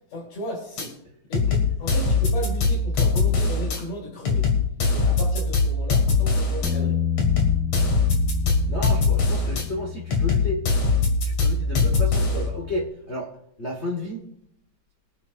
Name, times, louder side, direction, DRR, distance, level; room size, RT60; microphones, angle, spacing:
voice 1, 0.1-0.9 1.3-4.5 4.9-7.0, equal, 85° left, -7 dB, 5.1 m, -35 dB
sound 1, 0.8-0.9 1.3-3.8 4.2-6.7 7.2-9.6 10.1-12.5, left 4 dB, 60° left, 3.1 m, -22 dB
Bass guitar, 6.6-12.9, left 8 dB, 5° right, 1.9 m, -31 dB
voice 2, 8.7-10.6 11.2-13.3 13.6-14.2, left 1 dB, 40° left, -1 dB, 0.9 m, -32 dB
25.0 x 8.6 x 2.6 m, 0.74 s
omnidirectional pair, 3.5 m